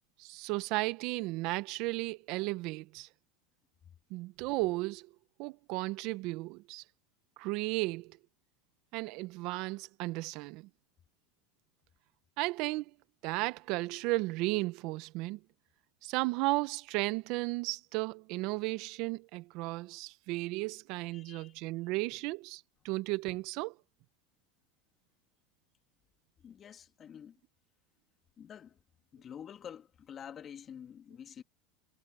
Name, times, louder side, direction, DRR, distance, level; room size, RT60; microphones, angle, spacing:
voice 1, 0.2-3.1 4.1-5.1 5.4-6.8 7.4-8.2 8.9-10.7 12.4-12.8 13.2-15.4 16.0-23.7, right 22 dB, 60° right, 1.4 m, -34 dB
voice 2, 21.1-21.5 26.4-27.4 28.4-28.8 29.1-31.4, left 8 dB, 35° left, 2.3 m, -48 dB
hypercardioid pair, 105°, 0 cm